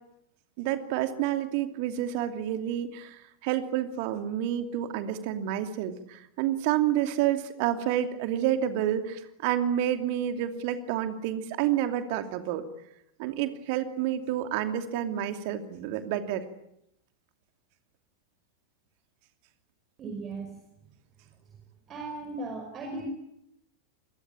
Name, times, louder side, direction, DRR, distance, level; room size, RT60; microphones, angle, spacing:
voice 1, 0.6-12.6 13.2-16.4, right 11 dB, 45° right, 8 dB, 2.7 m, -29 dB
voice 2, 20.0-20.5 21.9-23.1, right 2 dB, 30° right, 4 dB, 5.5 m, -36 dB
27.5 x 21.5 x 8.9 m, 0.81 s
figure-of-eight pair, 90°, 0 cm